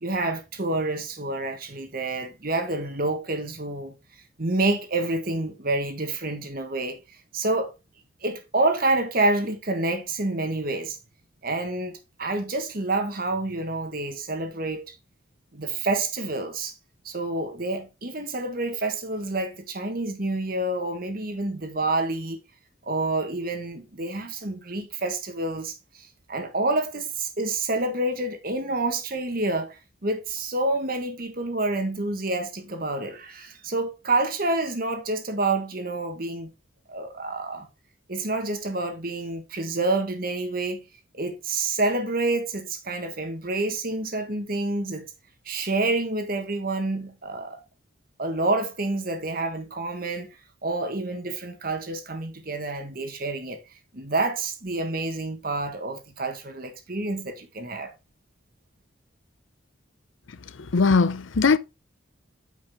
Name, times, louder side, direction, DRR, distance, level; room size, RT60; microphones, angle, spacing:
voice 1, 0.0-3.9 4.4-7.0 7.3-7.7 8.2-11.0 11.4-14.9 15.5-16.7 17.0-22.4 22.8-36.5 36.9-37.7 38.1-40.8 41.1-45.1 45.4-47.6 48.2-50.4 50.6-53.6 53.9-57.9, right 2 dB, 45° right, 1.5 m, -28 dB
voice 2, 60.7-61.6, left 4 dB, 75° left, 0.6 m, -19 dB
9.1 x 5.2 x 3.6 m
head